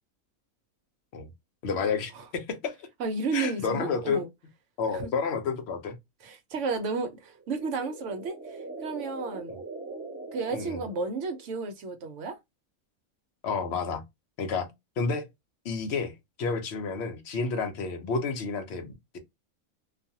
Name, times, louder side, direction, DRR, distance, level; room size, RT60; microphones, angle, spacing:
voice 1, 1.6-2.9 3.3-4.2 4.8-5.9 10.5-10.8 13.4-14.0 14.4-14.7 15.0-15.2 15.6-16.1 16.4-19.2, left 5 dB, 60° left, 0.8 m, -30 dB
voice 2, 3.0-4.3 4.9-5.1 6.2-9.5 10.3-12.4, right 4 dB, 65° right, 0.9 m, -32 dB
sound 1, 7.2-11.7, right 3 dB, 15° right, 1.5 m, -42 dB
2.5 x 2.4 x 2.6 m
omnidirectional pair, 1.5 m